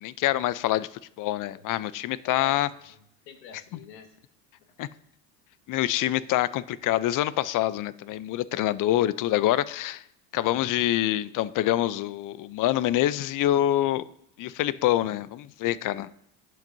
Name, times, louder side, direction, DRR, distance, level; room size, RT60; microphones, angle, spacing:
voice 1, 0.0-0.9 1.2-2.7 4.8-4.9 5.7-10.0 10.3-14.0 14.4-16.1, left 14 dB, 40° left, 0.6 m, -26 dB
voice 2, 2.2-4.2, left 6 dB, 85° left, 1.7 m, -47 dB
19.0 x 7.6 x 2.7 m
hypercardioid pair, 90°, 49 cm